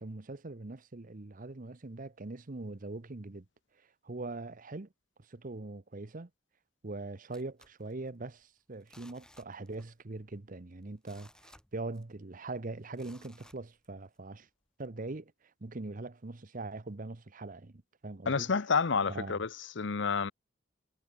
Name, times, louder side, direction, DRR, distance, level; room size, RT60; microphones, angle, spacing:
voice 1, 0.0-3.4 4.0-4.9 5.2-6.3 6.8-14.5 14.8-15.3 15.6-18.5 19.1-19.4, right 2 dB, 45° right, 0.9 m, -42 dB
sound 1, 7.3-8.4 8.8-10.0 10.3-10.4 10.8-12.3 12.9-14.2 14.7-14.8, left 1 dB, 5° left, 5.4 m, -60 dB
voice 2, 18.3-19.5 19.8-20.3, left 5 dB, 65° left, 0.8 m, -29 dB
head